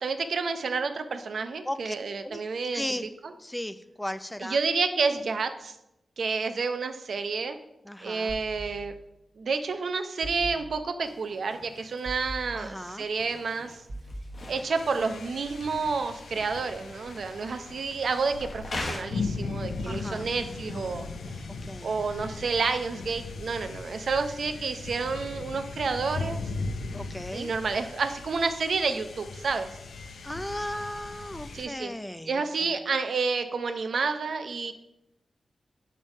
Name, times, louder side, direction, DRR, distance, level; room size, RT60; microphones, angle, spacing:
voice 1, 0.0-2.8 3.2-3.3 4.4-5.7 6.2-7.6 8.0-8.9 9.4-13.8 14.5-21.1 21.8-26.4 27.3-29.7 31.5-31.9 32.3-34.7, right 4 dB, 80° right, 8 dB, 0.7 m, -29 dB
voice 2, 2.7-3.0 3.4-4.6 7.9-8.3 12.5-13.1 19.9-20.3 21.7-21.9 26.9-27.5 30.2-32.3, left 1 dB, 10° left, 12 dB, 0.4 m, -35 dB
sound 1, 8.3-9.3 10.2-11.1 12.0-13.1 13.9-15.0, right 1 dB, 50° right, 1.1 m, -42 dB
sound 2, 11.0-19.0, left 2 dB, 55° left, 1.4 m, -43 dB
sound 3, 14.7-31.7, left 3 dB, 90° left, 0.6 m, -38 dB
7.1 x 5.4 x 5.2 m, 0.87 s
cardioid pair, 65°, 0 cm